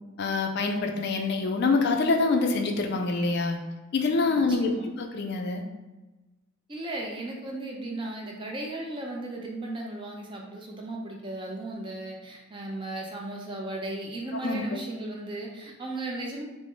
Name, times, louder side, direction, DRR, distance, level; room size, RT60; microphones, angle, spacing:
voice 1, 0.2-3.6 3.9-5.6 14.4-14.8, left 3 dB, 50° left, 4 dB, 0.3 m, -26 dB
voice 2, 4.3-4.9 6.7-16.4, right 2 dB, 25° right, -1 dB, 0.5 m, -36 dB
3.4 x 2.0 x 3.7 m, 1.1 s
head